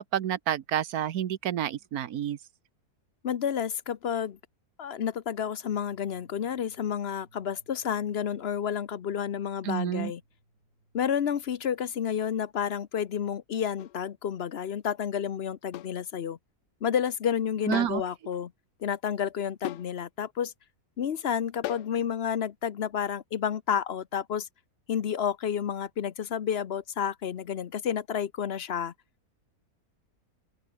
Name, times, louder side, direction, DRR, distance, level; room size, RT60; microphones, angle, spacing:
voice 1, 0.0-2.4 9.6-10.1 17.7-18.0, right 10 dB, 70° right, 1.4 m, -29 dB
voice 2, 3.2-4.4 4.8-10.2 10.9-16.4 16.8-18.5 18.8-20.5 21.0-24.5 24.9-28.9, left 8 dB, 50° left, 0.9 m, -30 dB
sound 1, 5.7-12.3, right 1 dB, 50° right, 8.1 m, -63 dB
sound 2, 13.8-14.0 15.7-16.0 17.7-18.0 18.3-18.4 19.6-19.9 21.6-22.0, left 14 dB, 85° left, 1.2 m, -37 dB
open air
omnidirectional pair, 1.7 m